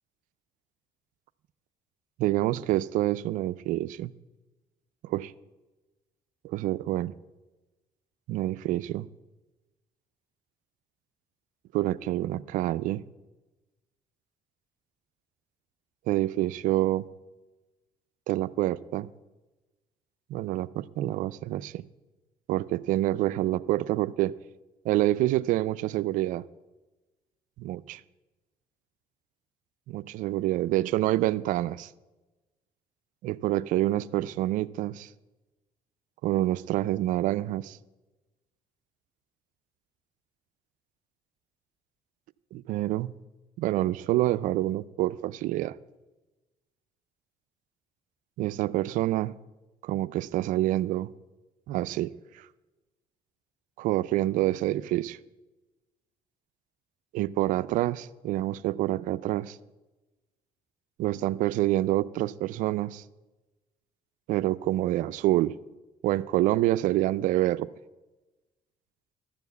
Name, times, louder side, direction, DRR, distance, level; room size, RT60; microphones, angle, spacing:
voice 1, 2.2-4.1 5.0-5.3 6.4-7.1 8.3-9.1 11.7-13.0 16.1-17.1 18.3-19.1 20.3-21.8 22.5-24.3 24.8-26.4 27.6-28.0 29.9-31.9 33.2-35.1 36.2-37.8 42.5-43.1 43.6-45.8 48.4-49.4 49.8-51.1 51.7-52.4 53.8-55.2 57.1-59.6 61.0-63.0 64.3-65.5 66.0-67.7, right 15 dB, 80° right, 18 dB, 0.4 m, -27 dB
13.0 x 7.0 x 8.2 m, 1.1 s
cardioid pair, 90°, 13 cm